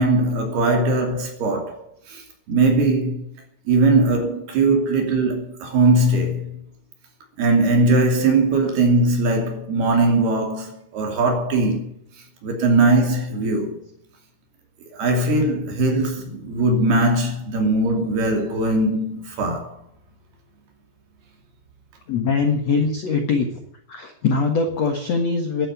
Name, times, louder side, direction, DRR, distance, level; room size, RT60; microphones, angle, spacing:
voice 1, 0.0-2.2 2.5-3.3 3.7-6.6 7.4-11.9 12.4-13.8 14.9-19.8, right 2 dB, 60° right, 4.6 m, -20 dB
voice 2, 22.1-23.5 23.9-25.7, left 4 dB, 60° left, 1.7 m, -22 dB
12.5 x 11.5 x 9.5 m
omnidirectional pair, 5.3 m